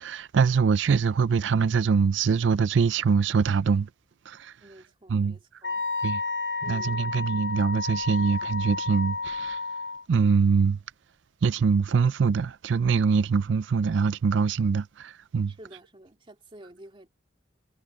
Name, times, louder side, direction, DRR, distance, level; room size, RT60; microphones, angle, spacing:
voice 1, 0.0-3.9 4.3-4.5 5.1-5.4 6.0-6.2 6.7-9.6 10.1-10.8 11.4-15.5, right 5 dB, 65° right, 0.4 m, -23 dB
voice 2, 4.6-5.8 6.6-7.1 15.5-17.1, right 1 dB, 25° right, 2.6 m, -50 dB
Wind instrument woodwind instrument, 5.6-10.0, left 3 dB, 70° left, 2.2 m, -31 dB
head